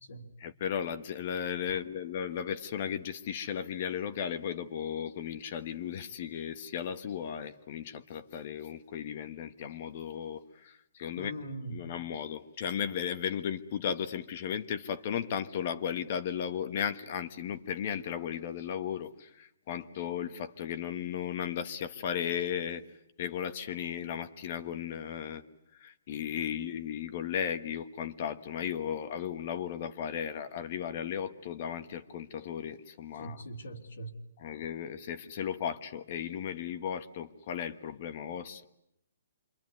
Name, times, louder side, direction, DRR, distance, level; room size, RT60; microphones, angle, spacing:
voice 1, 0.4-11.3 11.7-22.8 23.2-25.4 25.8-33.4 34.4-38.6, left 8 dB, 40° left, 1.3 m, -35 dB
voice 2, 11.2-11.8 33.2-34.1, right 1 dB, 75° left, 3.2 m, -41 dB
27.5 x 23.0 x 9.5 m
hypercardioid pair, 160°, 0 cm